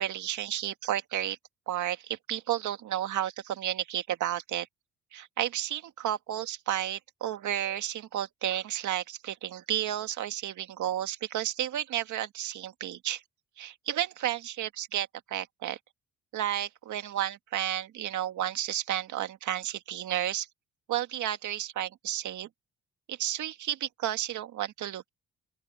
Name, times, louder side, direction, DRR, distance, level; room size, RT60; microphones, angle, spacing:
voice 1, 0.0-1.4 1.7-4.7 5.1-13.2 13.6-15.8 16.3-20.5 20.9-22.5 23.1-25.1, right 12 dB, 75° right, 1.9 m, -32 dB
open air
cardioid pair, 90°, 30 cm